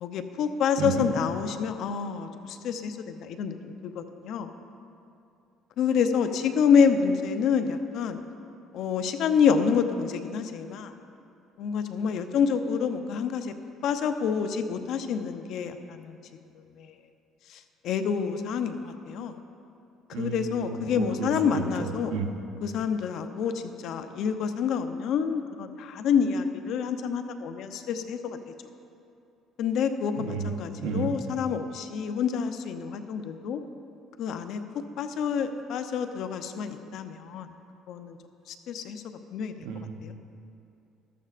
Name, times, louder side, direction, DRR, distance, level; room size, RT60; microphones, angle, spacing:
voice 1, 0.0-4.5 5.8-8.2 8.7-10.9 11.6-13.5 13.8-16.2 16.5-17.0 17.5-19.4 20.1-22.1 22.6-28.4 29.6-33.6 34.2-37.5 37.9-38.2 38.5-39.7 40.0-40.1, left 6 dB, 65° left, 8 dB, 0.7 m, -28 dB
voice 2, 20.1-21.6 22.1-22.3 30.2-30.5 30.8-31.1 39.6-40.1, right 6 dB, 80° right, 4 dB, 0.9 m, -32 dB
14.0 x 13.0 x 2.5 m, 2.6 s
cardioid pair, 95°, 0 cm